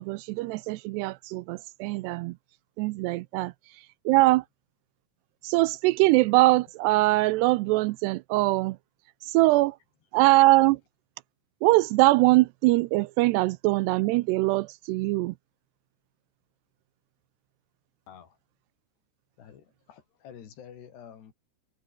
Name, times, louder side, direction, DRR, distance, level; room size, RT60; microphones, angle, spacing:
voice 1, 0.0-2.4 2.8-3.5 4.1-4.4 5.4-8.8 9.3-9.8 10.1-10.8 11.6-15.3, right 20 dB, 80° right, 2.6 m, -22 dB
voice 2, 18.1-18.4 19.4-21.3, left 8 dB, 70° left, 5.0 m, -49 dB
omnidirectional pair, 5.0 m